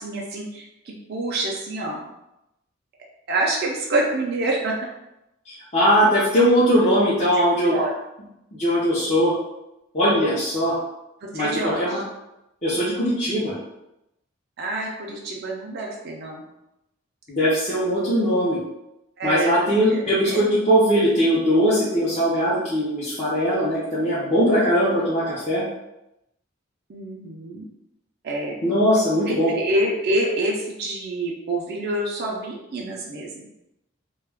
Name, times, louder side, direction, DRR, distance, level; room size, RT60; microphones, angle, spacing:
voice 1, 0.0-2.1 3.3-4.8 7.6-7.9 11.3-12.0 14.6-16.4 19.2-20.4 26.9-27.7 28.2-28.5 29.3-33.4, right 1 dB, 55° right, -1 dB, 0.4 m, -27 dB
voice 2, 5.5-7.8 8.6-9.3 9.9-10.8 11.3-12.0 12.6-13.5 17.3-18.6 19.2-25.6 28.6-29.5, equal, 35° left, -10 dB, 0.7 m, -20 dB
2.3 x 2.2 x 3.4 m, 0.88 s
head